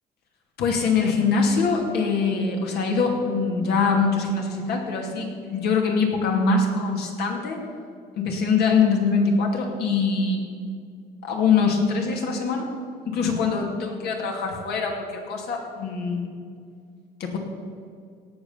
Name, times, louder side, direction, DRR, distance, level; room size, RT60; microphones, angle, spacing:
voice 1, 0.6-7.6 8.2-10.5 11.2-12.7 13.0-16.3 17.2-17.4, left 4 dB, 75° left, 1 dB, 2.6 m, -23 dB
17.5 x 6.2 x 7.2 m, 2.2 s
cardioid pair, 110°, 17 cm